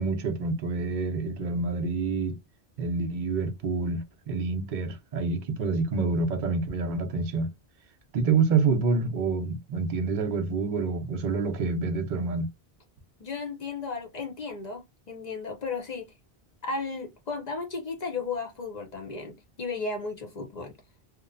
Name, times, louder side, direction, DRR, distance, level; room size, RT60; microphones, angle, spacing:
voice 1, 0.0-2.4 2.8-7.5 8.1-12.5, right 4 dB, 60° right, 0.6 m, -27 dB
voice 2, 13.2-16.1 16.6-20.7, left 4 dB, 45° left, 0.8 m, -34 dB
2.9 x 2.0 x 2.4 m
omnidirectional pair, 1.0 m